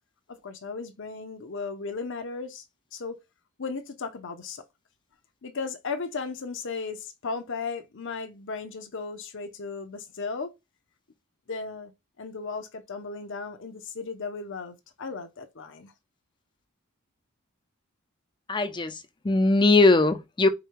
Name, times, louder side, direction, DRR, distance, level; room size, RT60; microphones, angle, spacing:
voice 1, 0.3-2.6 2.9-3.2 3.6-4.6 5.4-10.5 11.5-11.9 12.2-15.9, left 4 dB, 55° left, 0.7 m, -35 dB
voice 2, 18.5-20.5, left 2 dB, 20° left, 0.5 m, -21 dB
4.9 x 2.3 x 4.6 m
head